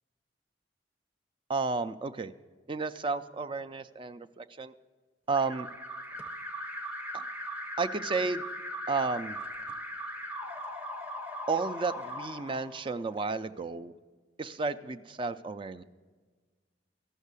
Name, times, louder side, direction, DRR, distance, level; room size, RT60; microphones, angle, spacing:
voice 1, 1.5-2.3 2.7-4.7 5.3-5.7 7.1-7.2 7.8-8.4 8.9-9.4 11.5-13.9 14.4-15.8, right 4 dB, 30° right, 11 dB, 0.4 m, -32 dB
Alarm, 5.3-13.2, equal, 10° right, 0.8 m, -39 dB
13.5 x 6.4 x 8.1 m, 1.4 s
head